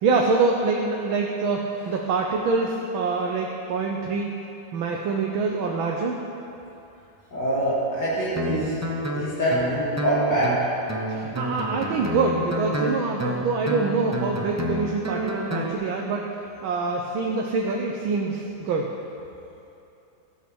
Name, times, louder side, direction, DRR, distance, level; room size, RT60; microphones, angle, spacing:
voice 1, 0.0-4.3 4.7-6.2 11.1-16.3 16.6-18.9, right 4 dB, 90° right, 0 dB, 1.7 m, -25 dB
voice 2, 7.3-8.8 9.1-10.5, right 1 dB, 65° left, -8 dB, 2.9 m, -24 dB
Guitar, 8.4-15.7, equal, 25° right, 0.3 m, -29 dB
13.5 x 8.2 x 6.3 m, 2.8 s
omnidirectional pair, 2.1 m